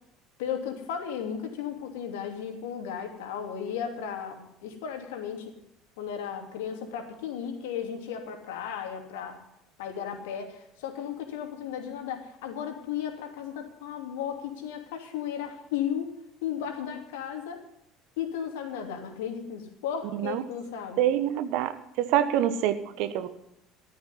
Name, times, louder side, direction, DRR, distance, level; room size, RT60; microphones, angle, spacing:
voice 1, 0.4-5.5 6.0-9.4 9.8-16.1 16.4-17.6 18.2-21.0, left 8 dB, 65° left, 4 dB, 2.8 m, -35 dB
voice 2, 21.0-21.7 22.0-23.3, right 11 dB, 60° right, 11 dB, 1.3 m, -25 dB
14.0 x 13.5 x 5.5 m, 0.79 s
figure-of-eight pair, 65°, 0 cm